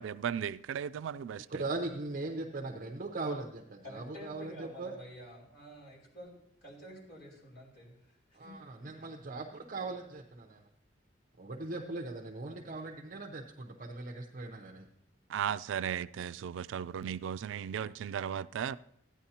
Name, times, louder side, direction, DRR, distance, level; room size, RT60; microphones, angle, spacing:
voice 1, 0.0-1.6 15.3-18.8, right 8 dB, 85° right, 0.3 m, -36 dB
voice 2, 1.5-4.9 8.3-10.6 11.4-14.9, right 2 dB, 45° right, 0.7 m, -39 dB
voice 3, 3.8-6.3 6.6-8.5, equal, 55° left, 3.9 m, -50 dB
14.5 x 9.7 x 2.8 m
head